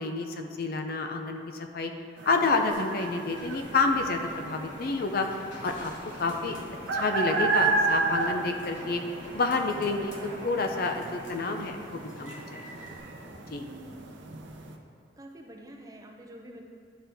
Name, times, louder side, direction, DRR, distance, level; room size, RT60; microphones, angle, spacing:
voice 1, 0.0-1.4 1.7-1.9 2.3-5.3 5.6-5.9 6.2-6.5 6.9-9.0 9.3-10.1 10.4-12.7 13.5-13.6, left 3 dB, 50° left, 5 dB, 0.5 m, -28 dB
sound 1, 2.2-14.7, right 3 dB, 75° right, 0.7 m, -33 dB
sound 2, 2.7-13.0, equal, 80° left, 1.3 m, -48 dB
sound 3, 3.3-12.0, equal, 15° left, 0.7 m, -49 dB
voice 2, 13.6-14.1 15.2-16.6, right 1 dB, 20° right, 1 dB, 0.6 m, -47 dB
11.0 x 4.3 x 3.5 m, 2.4 s
head